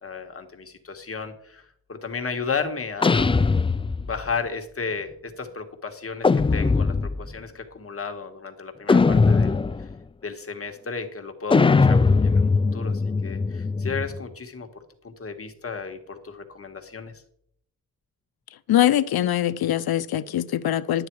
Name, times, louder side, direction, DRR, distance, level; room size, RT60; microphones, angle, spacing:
voice 1, 0.0-3.4 4.0-9.9 10.2-14.7 15.0-17.2, left 5 dB, 35° left, 1.6 m, -34 dB
sound 1, 3.0-4.3 6.2-7.3 8.9-9.9 11.5-14.2, left 4 dB, 15° left, 0.3 m, -20 dB
voice 2, 18.7-21.1, left 12 dB, 80° left, 0.6 m, -22 dB
11.5 x 8.9 x 4.7 m
cardioid pair, 95°, 37 cm